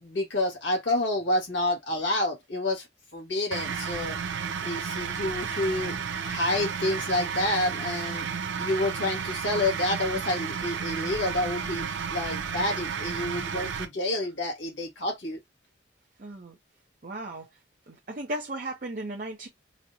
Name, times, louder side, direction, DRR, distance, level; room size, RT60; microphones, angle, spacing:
voice 1, 0.0-2.9 3.1-4.2 4.6-6.0 6.2-8.3 8.6-15.4, left 2 dB, 85° left, 1.8 m, -29 dB
sound 1, 3.5-13.8, right 6 dB, 80° right, 0.6 m, -32 dB
voice 2, 16.2-16.6 17.0-17.5 17.9-19.5, right 1 dB, 45° right, 0.7 m, -36 dB
4.1 x 2.1 x 2.7 m
head